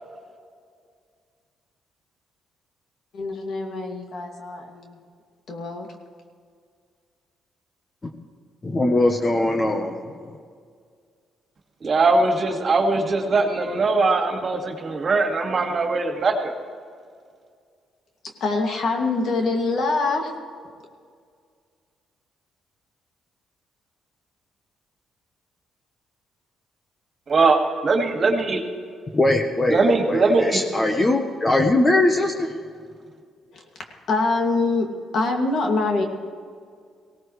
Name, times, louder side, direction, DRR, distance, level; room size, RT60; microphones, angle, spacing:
voice 1, 3.1-4.9 5.5-5.9 18.4-20.3 33.5-33.6 34.1-36.0, left 3 dB, 60° left, 2 dB, 2.4 m, -24 dB
voice 2, 8.6-10.4 29.1-32.5, left 2 dB, 25° left, 3 dB, 1.2 m, -21 dB
voice 3, 11.8-16.5 27.3-28.6 29.7-30.6, right 3 dB, 40° right, 2 dB, 2.3 m, -21 dB
18.5 x 17.5 x 3.3 m, 2.1 s
cardioid pair, 90°, 0 cm